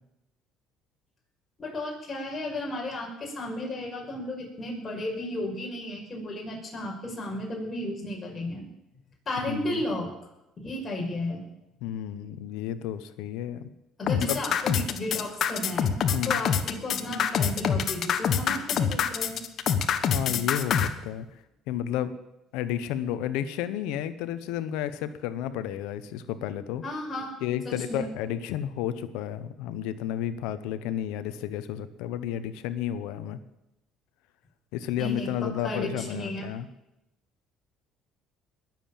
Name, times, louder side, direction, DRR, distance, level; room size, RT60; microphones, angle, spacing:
voice 1, 1.6-8.6 9.3-10.1 10.6-11.5 14.0-16.0 16.2-19.4 26.8-27.4 27.7-28.1 35.0-36.5, left 1 dB, 30° left, 0 dB, 5.7 m, -33 dB
voice 2, 9.5-9.8 11.8-13.7 14.1-14.4 16.1-16.4 20.1-21.3 21.7-22.1 22.5-26.8 27.4-33.4 34.7-36.7, left 10 dB, 85° left, 12 dB, 1.0 m, -32 dB
sound 1, 14.1-20.9, left 8 dB, 50° left, 1.3 m, -25 dB
20.5 x 7.6 x 7.5 m, 0.91 s
cardioid pair, 110°, 0 cm